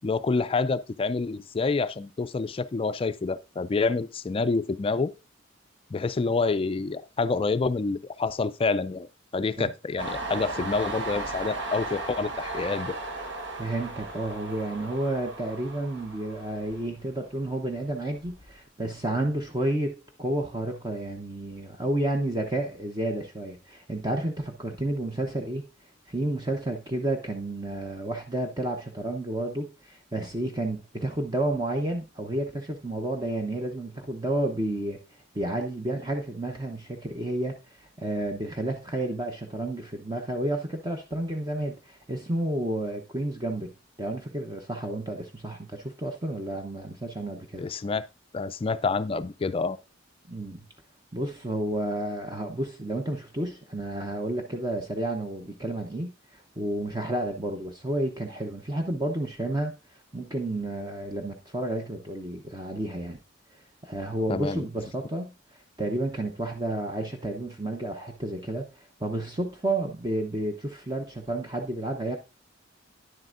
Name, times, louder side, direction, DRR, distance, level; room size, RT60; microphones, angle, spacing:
voice 1, 0.0-5.1 5.9-13.0 47.6-48.0 48.3-49.8 64.3-64.7, left 4 dB, 30° left, 0.4 m, -27 dB
Train, 10.0-17.4 17.8-18.6, right 2 dB, 65° right, 1.2 m, -36 dB
voice 2, 13.6-25.6 26.1-35.0 35.3-43.7 44.0-47.7 50.3-50.7 51.1-59.7 60.1-63.2 63.8-65.3 65.8-68.7 69.0-72.2, right 1 dB, 20° right, 0.8 m, -31 dB
10.0 x 7.7 x 2.5 m
head